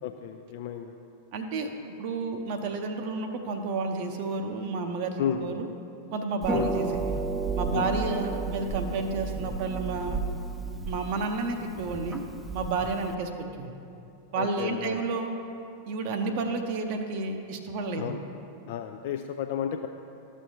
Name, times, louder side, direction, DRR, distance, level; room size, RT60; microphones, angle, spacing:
voice 1, 0.0-0.9 5.2-5.6 6.5-6.7 7.7-8.0 14.3-15.0 18.0-18.2 18.6-19.9, left 9 dB, 50° left, 5 dB, 0.3 m, -32 dB
voice 2, 1.3-1.7 2.0-5.7 6.1-6.9 7.6-10.2 10.8-12.2 12.5-13.8 14.3-15.3 15.9-18.2, right 3 dB, 45° right, 5 dB, 0.7 m, -31 dB
Harp, 6.4-13.1, right 4 dB, 5° right, 0.5 m, -33 dB
13.0 x 6.2 x 2.8 m, 2.7 s
figure-of-eight pair, 90°, 0 cm